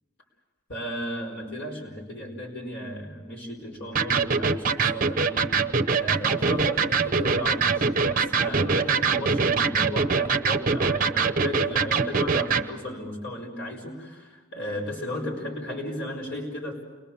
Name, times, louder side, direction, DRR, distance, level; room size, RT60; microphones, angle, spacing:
voice 1, 0.7-5.6 5.9-16.8, equal, 55° left, 0 dB, 4.8 m, -35 dB
Electric guitar, 3.9-12.7, right 5 dB, 40° right, 0.8 m, -23 dB
sound 1, 5.3-12.5, left 1 dB, 25° left, 6.7 m, -56 dB
29.0 x 22.0 x 7.1 m, 1.3 s
head